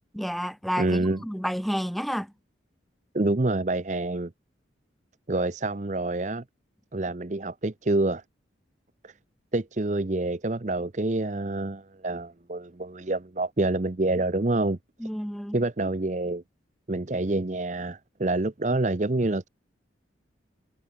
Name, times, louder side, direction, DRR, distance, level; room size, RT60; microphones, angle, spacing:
voice 1, 0.1-2.3 15.0-15.6, equal, ahead, 2.1 m, -30 dB
voice 2, 0.8-1.2 3.1-4.3 5.3-6.4 6.9-8.2 9.0-9.1 9.5-14.8 15.5-16.4 16.9-19.5, right 2 dB, 40° right, 0.7 m, -27 dB
head